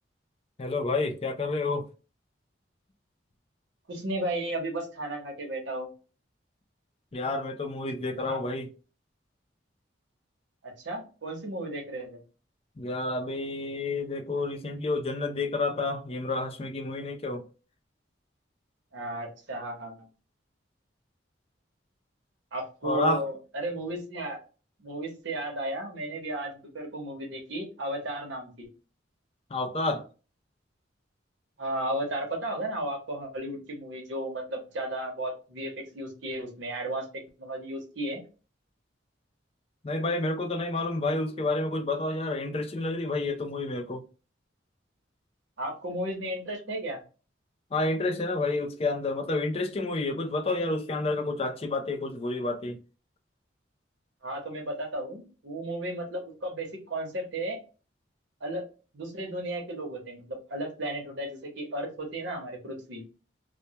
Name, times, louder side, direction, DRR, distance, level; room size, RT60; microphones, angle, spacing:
voice 1, 0.6-1.9 7.1-8.7 12.8-17.4 22.8-23.2 29.5-30.1 39.8-44.0 47.7-52.8, left 2 dB, 30° left, 0.4 m, -29 dB
voice 2, 3.9-5.9 8.3-8.4 10.6-12.2 18.9-20.1 22.5-24.4 24.8-28.7 31.6-38.2 45.6-47.0 54.2-57.6 58.4-58.7 58.9-63.0, right 1 dB, 80° right, 0.8 m, -34 dB
2.1 x 2.1 x 2.7 m
head